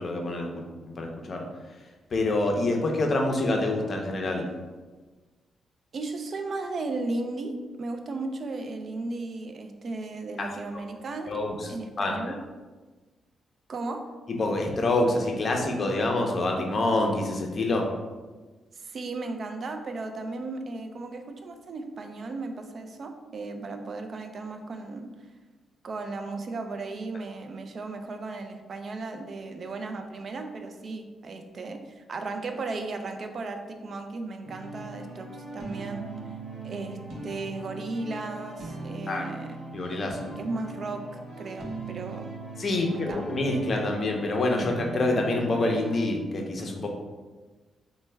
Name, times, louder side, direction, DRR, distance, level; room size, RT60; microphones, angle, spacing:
voice 1, 0.0-1.5 2.1-4.5 10.4-10.5 10.7-10.8 11.3-12.4 14.4-17.9 39.1-39.3 39.7-40.3 42.6-46.9, left 2 dB, 45° left, 2 dB, 0.5 m, -27 dB
voice 2, 5.9-11.3 11.7-12.4 13.7-14.0 18.7-25.1 25.8-36.1 36.6-37.0 37.2-39.6 40.4-41.0 41.4-42.3 42.8-43.2, right 3 dB, 50° right, 5 dB, 0.3 m, -35 dB
sound 1, 34.4-46.0, right 2 dB, 85° right, 0.7 m, -39 dB
3.2 x 2.1 x 3.2 m, 1.3 s
cardioid pair, 105°, 0 cm